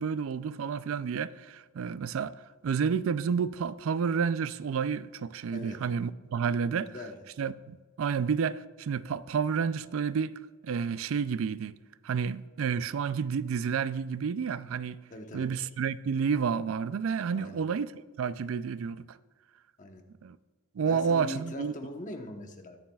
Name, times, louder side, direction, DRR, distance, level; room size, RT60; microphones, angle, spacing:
voice 1, 0.0-2.3 2.6-6.9 7.4-10.4 10.6-11.7 12.0-15.0 15.3-19.1 20.2-20.4 20.8-21.7, right 6 dB, 60° right, 0.3 m, -30 dB
voice 2, 6.7-7.2 15.1-15.5 17.3-17.6 19.8-20.0 20.8-22.8, left 1 dB, 35° left, 1.0 m, -41 dB
21.5 x 7.2 x 2.3 m
head